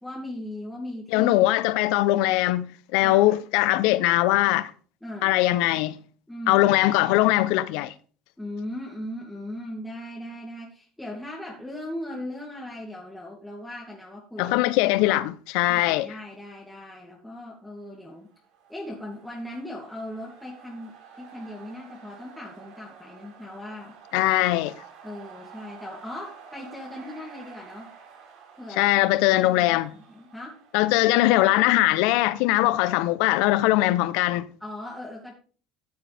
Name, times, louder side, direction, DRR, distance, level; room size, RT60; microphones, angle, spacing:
voice 1, 0.0-1.5 3.0-3.4 5.0-5.3 6.3-6.7 8.4-14.6 15.0-15.2 15.7-18.3 18.7-23.9 25.0-27.9 28.6-28.9 29.3-30.6 34.6-35.3, left 1 dB, 5° left, 2.6 m, -38 dB
voice 2, 1.1-4.7 5.2-6.0 6.5-7.9 14.4-16.1 24.1-24.7 28.8-29.9 30.7-34.5, left 17 dB, 75° left, 0.7 m, -21 dB
sound 1, 18.1-31.9, right 6 dB, 70° right, 5.1 m, -50 dB
14.0 x 7.6 x 3.5 m
supercardioid pair, 115°, 0 cm